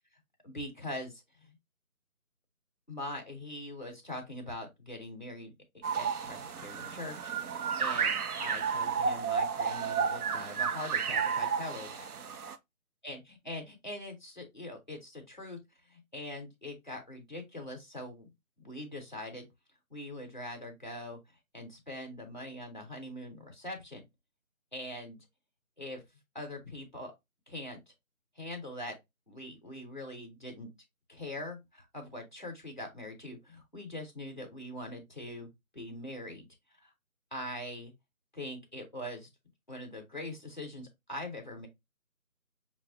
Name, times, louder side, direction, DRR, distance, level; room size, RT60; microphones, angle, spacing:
voice 1, 0.4-1.6 2.9-5.5 6.0-12.1 13.0-15.6 15.9-18.3 18.6-19.5 19.9-21.2 21.5-24.0 24.7-25.2 25.8-26.0 26.3-27.1 27.5-27.8 28.4-29.0 29.3-30.7 31.1-36.5 36.8-36.9 37.3-37.9 38.3-39.3 39.7-41.7, left 1 dB, 35° left, 0.9 m, -42 dB
sound 1, 5.8-12.5, right 6 dB, 85° right, 0.6 m, -32 dB
5.9 x 2.0 x 2.7 m
figure-of-eight pair, 180°, 43 cm